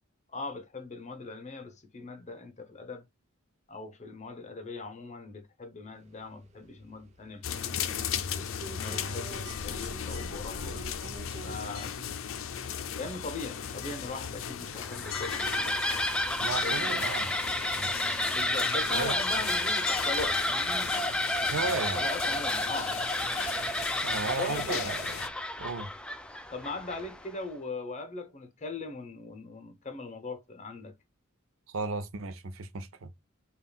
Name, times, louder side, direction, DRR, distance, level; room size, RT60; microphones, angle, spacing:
voice 1, 0.3-3.0 3.7-8.3 8.8-10.9 11.4-12.0 13.0-15.9 16.6-17.0 18.3-20.9 21.9-23.0 24.3-24.9 26.5-30.9, left 3 dB, 35° left, 0.8 m, -40 dB
sound 1, 5.9-11.6, right 5 dB, 35° right, 0.7 m, -49 dB
sound 2, 7.4-25.3, left 8 dB, 70° left, 0.4 m, -37 dB
sound 3, 14.7-27.3, left 1 dB, 5° left, 0.3 m, -31 dB
voice 2, 16.4-17.4 17.8-17.9 18.9-19.2 21.5-22.1 24.0-25.1 25.6-25.9 31.7-33.1, right 4 dB, 75° right, 0.6 m, -34 dB
5.5 x 2.4 x 2.2 m
head